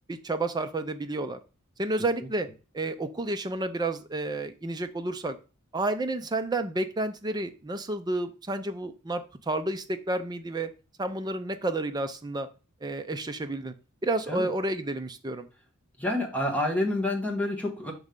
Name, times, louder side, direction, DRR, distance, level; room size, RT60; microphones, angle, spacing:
voice 1, 0.1-1.4 1.8-2.5 2.7-5.4 5.7-10.7 11.0-12.5 12.8-13.7 14.0-15.5, right 2 dB, 20° right, 8 dB, 0.5 m, -30 dB
voice 2, 16.0-17.9, left 1 dB, 5° left, -1 dB, 1.3 m, -28 dB
6.1 x 3.2 x 5.2 m, 0.33 s
head